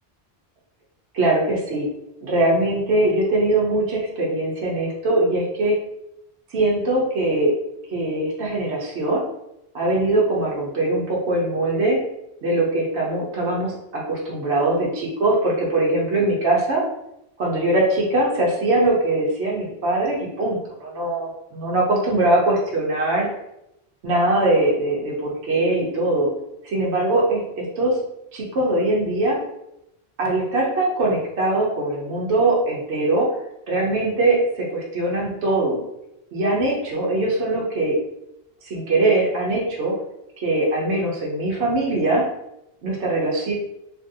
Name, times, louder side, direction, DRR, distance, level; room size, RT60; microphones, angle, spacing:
voice 1, 1.1-1.9 2.2-5.8 6.5-7.6 7.9-9.3 9.7-12.0 12.4-16.8 17.4-23.3 24.0-26.3 26.6-28.0 28.3-29.4 30.2-33.3 33.7-35.8 36.3-38.0 38.6-39.9 40.4-42.3 42.8-43.5, right 2 dB, 85° right, -3 dB, 1.1 m, -21 dB
2.9 x 2.6 x 2.6 m, 0.83 s
omnidirectional pair, 1.1 m